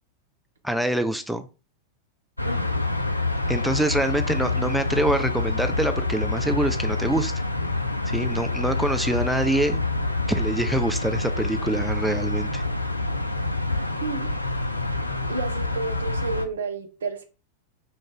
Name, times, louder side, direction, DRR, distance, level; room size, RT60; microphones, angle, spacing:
voice 1, 0.6-1.5 3.5-7.3 8.1-9.8 10.3-12.6, right 1 dB, ahead, 0.3 m, -25 dB
sound 1, 2.4-16.5, left 2 dB, 85° left, 0.3 m, -27 dB
voice 2, 2.4-2.8 14.0-14.3 15.3-17.2, right 3 dB, 65° right, 0.6 m, -31 dB
3.7 x 2.5 x 3.6 m
figure-of-eight pair, 90°, 0 cm